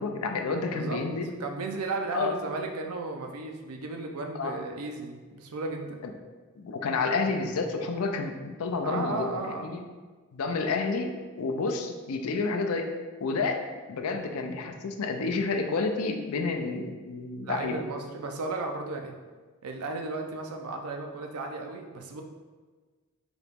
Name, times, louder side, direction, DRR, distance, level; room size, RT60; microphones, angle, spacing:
voice 1, 0.0-1.3 2.1-2.3 4.4-4.6 6.0-6.1 6.6-9.3 9.6-9.8 10.3-12.9 13.2-17.8, left 4 dB, 80° left, 5 dB, 0.5 m, -30 dB
voice 2, 1.4-6.0 8.8-9.9 17.5-19.1 19.6-22.2, right 3 dB, 85° right, 3 dB, 0.5 m, -34 dB
3.9 x 2.9 x 3.5 m, 1.4 s
head